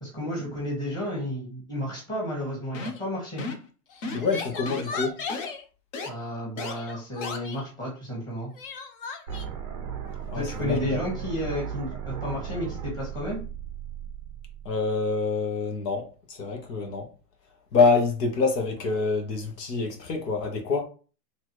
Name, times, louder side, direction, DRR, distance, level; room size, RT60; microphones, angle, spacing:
voice 1, 0.0-3.4 6.0-8.5 10.3-13.4, equal, 10° left, 1.4 m, -32 dB
sound 1, 2.7-3.1 3.4-3.7 4.0-4.3 4.7-4.8 5.3-5.5 5.9-6.1 6.6-6.7 7.2-7.4, left 3 dB, 55° left, 1.0 m, -33 dB
Crying sobbing, 2.8-3.1 3.9-5.6 6.7-7.7 8.6-9.5, left 5 dB, 35° left, 0.5 m, -37 dB
voice 2, 4.1-5.2 10.3-11.0 14.6-17.1 17.7-20.9, left 4 dB, 85° left, 1.5 m, -26 dB
sound 2, 9.3-15.2, right 8 dB, 25° right, 0.4 m, -36 dB
4.4 x 3.1 x 3.1 m
supercardioid pair, 165°, 47 cm